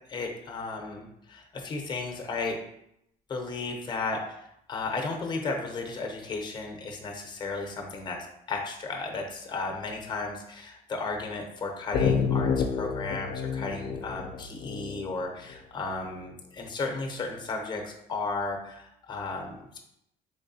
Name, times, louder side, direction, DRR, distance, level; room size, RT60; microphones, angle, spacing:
voice 1, 0.1-2.6 3.3-4.4 4.7-8.2 8.5-19.8, left 3 dB, 25° left, 2 dB, 0.7 m, -34 dB
sound 1, 11.9-15.5, left 6 dB, 60° left, 0.4 m, -29 dB
3.6 x 3.2 x 2.7 m, 0.78 s
cardioid pair, 110°, 17 cm